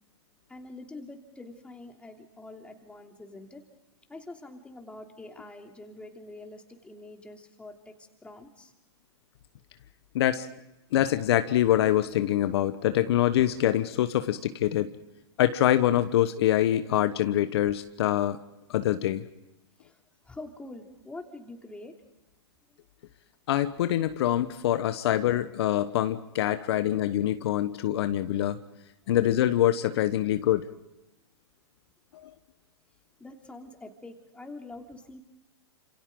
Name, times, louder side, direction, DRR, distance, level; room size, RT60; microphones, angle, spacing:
voice 1, 0.5-3.6 4.1-8.7 19.8-20.0 20.2-21.9 33.2-35.2, left 2 dB, 10° left, 3.1 m, -45 dB
voice 2, 10.1-10.5 10.9-14.9 15.4-18.4 18.7-19.2 23.5-28.6 29.1-30.7 32.1-32.4, left 12 dB, 60° left, 1.2 m, -25 dB
29.0 x 27.5 x 3.9 m
hypercardioid pair, 115°, 15 cm